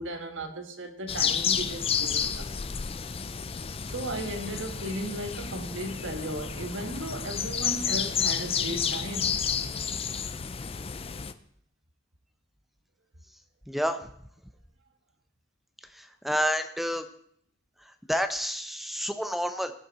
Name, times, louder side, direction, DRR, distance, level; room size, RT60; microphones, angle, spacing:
voice 1, 0.0-2.5 3.8-9.4, right 1 dB, 85° right, 1.6 m, -36 dB
sound 1, 1.1-11.3, left 7 dB, 30° left, 0.5 m, -31 dB
voice 2, 13.7-14.1 15.9-17.1 18.1-19.7, equal, ahead, 0.8 m, -29 dB
19.5 x 6.7 x 4.2 m
head